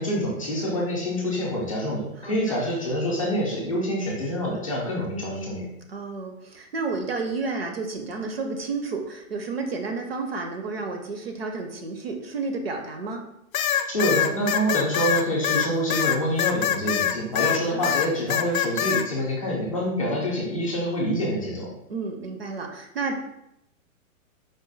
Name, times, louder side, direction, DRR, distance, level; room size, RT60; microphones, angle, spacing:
voice 1, 0.0-5.7 13.9-21.7, equal, 25° left, -4 dB, 0.5 m, -26 dB
voice 2, 2.2-2.6 5.9-13.2 17.7-17.9 21.9-23.2, right 3 dB, 45° right, 4 dB, 0.5 m, -31 dB
sound 1, 13.5-17.6 17.8-19.0, left 10 dB, 80° left, 0.5 m, -24 dB
4.9 x 2.3 x 3.8 m, 0.82 s
hypercardioid pair, 180°, 42 cm